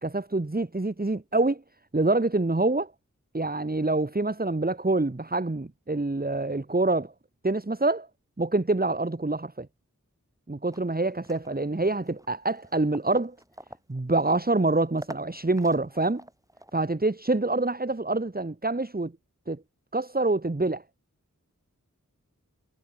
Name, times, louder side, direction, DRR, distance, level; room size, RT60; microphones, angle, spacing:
voice 1, 0.0-1.6 1.9-2.9 3.3-7.1 7.4-8.1 8.4-9.7 10.5-13.3 13.9-16.2 16.7-19.1 19.5-19.6 19.9-20.8, right 2 dB, 30° right, 1.5 m, -26 dB
sound 1, 10.7-16.9, equal, 10° right, 6.3 m, -48 dB
wide cardioid pair, 50°, 32 cm